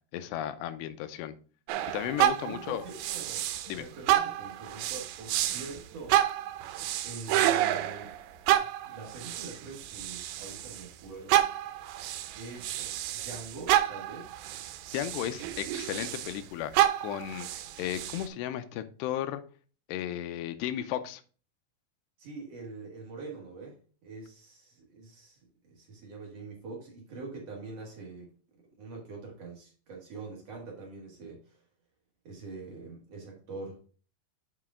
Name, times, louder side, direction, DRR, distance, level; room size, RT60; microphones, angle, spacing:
voice 1, 0.1-1.4 1.9-2.8 3.7-3.9 14.9-16.7 17.0-19.4 19.9-21.2, left 11 dB, 85° left, 10 dB, 2.8 m, -34 dB
sound 1, 1.7-3.8 4.1-10.9 11.3-16.4 16.7-18.3, right 13 dB, 85° right, 2.9 m, -29 dB
voice 2, 2.4-6.2 7.0-8.2 8.6-11.5 12.4-12.9 13.1-14.3 22.2-25.4 25.6-28.3 28.8-31.6 32.2-33.8, right 3 dB, 50° right, -1 dB, 2.1 m, -44 dB
7.7 x 4.9 x 3.6 m, 0.39 s
omnidirectional pair, 4.9 m